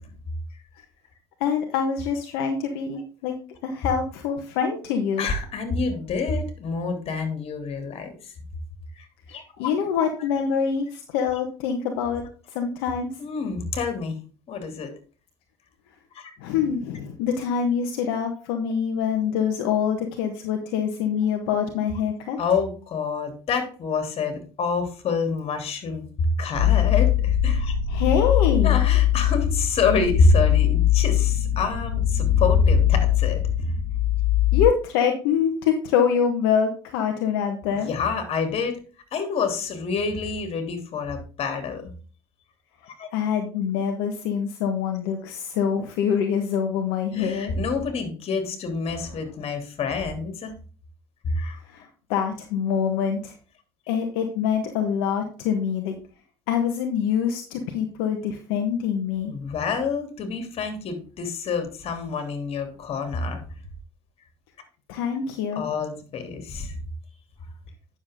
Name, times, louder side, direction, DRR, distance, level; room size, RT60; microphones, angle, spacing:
voice 1, 1.4-3.3 3.6-5.3 9.3-13.1 16.4-22.4 27.9-28.8 34.5-37.9 43.1-47.5 51.6-53.3 53.9-55.9 56.5-59.3 64.9-65.6, left 7 dB, 80° left, 4 dB, 1.3 m, -25 dB
voice 2, 5.2-8.1 9.0-9.7 10.0-10.1 13.2-14.2 14.5-14.9 16.1-16.3 22.4-26.0 26.4-27.7 28.6-33.4 37.8-38.8 39.1-41.8 43.0-43.1 47.1-50.5 51.2-51.6 59.3-63.4 65.5-66.7, left 4 dB, 55° left, 7 dB, 3.1 m, -27 dB
sound 1, 26.5-34.7, left 12 dB, 50° right, 4.4 m, -21 dB
9.7 x 7.1 x 3.6 m, 0.38 s
hypercardioid pair, 70°, 12 cm